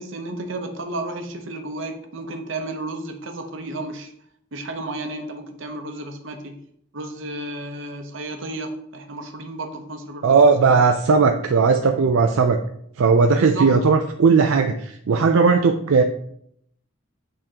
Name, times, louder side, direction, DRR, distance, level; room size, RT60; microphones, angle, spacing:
voice 1, 0.0-4.1 4.5-6.6 6.9-10.4 10.6-10.7 13.3-13.7, right 2 dB, 65° right, 5 dB, 0.8 m, -32 dB
voice 2, 10.2-12.6 13.0-16.0, right 4 dB, 80° right, 5 dB, 0.4 m, -17 dB
8.7 x 3.7 x 2.9 m, 0.69 s
head